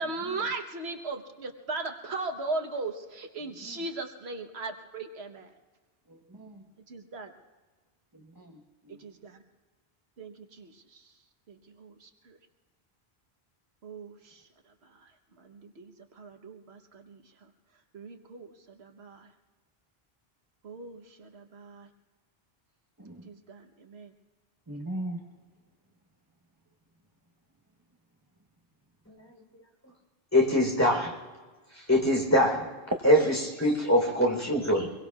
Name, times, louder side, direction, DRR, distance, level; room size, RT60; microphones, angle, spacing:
voice 1, 0.0-5.5 6.9-7.3 9.0-9.4 10.2-11.0 11.5-12.4 13.8-14.4 14.8-15.1 15.4-17.2 17.9-19.3 20.6-21.9 23.2-24.1, right 3 dB, 90° right, 5 dB, 1.4 m, -38 dB
voice 2, 6.1-6.6 8.1-8.6 8.9-9.0 23.0-23.3 24.7-25.2 33.1-33.5, right 1 dB, 20° right, 2 dB, 1.1 m, -40 dB
voice 3, 30.3-31.1 31.8-32.7 33.0-34.9, left 1 dB, 15° left, -1 dB, 3.8 m, -23 dB
24.5 x 22.5 x 2.4 m, 1.4 s
omnidirectional pair, 1.0 m